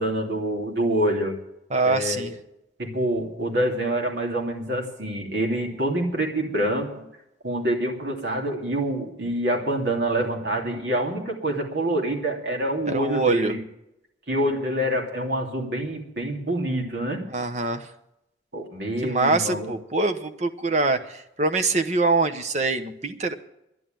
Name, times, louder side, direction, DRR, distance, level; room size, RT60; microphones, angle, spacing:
voice 1, 0.0-1.4 1.8-2.3 2.8-7.0 7.4-13.6 14.3-17.2 18.5-19.7, right 1 dB, 65° right, 1 dB, 2.8 m, -26 dB
voice 2, 1.7-2.3 12.9-13.5 17.3-17.9 19.0-23.3, right 3 dB, 40° right, 8 dB, 0.9 m, -24 dB
11.0 x 10.5 x 9.0 m, 0.84 s
head